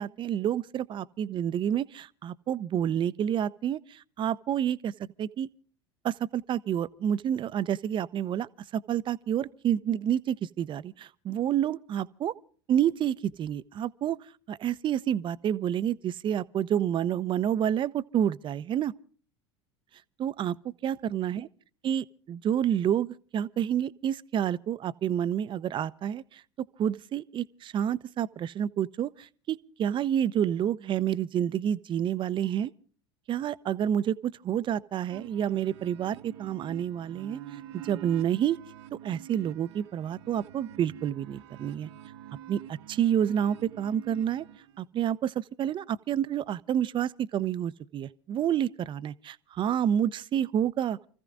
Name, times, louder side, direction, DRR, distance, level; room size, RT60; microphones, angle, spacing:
voice 1, 0.0-4.9 5.2-5.5 6.0-12.3 12.7-14.2 14.5-18.9 20.2-20.5 20.8-21.5 21.8-26.4 26.8-32.7 33.3-37.4 37.8-38.6 38.9-41.9 42.5-44.5 44.8-51.0, right 10 dB, 35° right, 0.6 m, -29 dB
sound 1, 35.1-44.8, right 11 dB, 70° right, 0.9 m, -47 dB
29.5 x 15.0 x 2.5 m
hypercardioid pair, 80°, 15 cm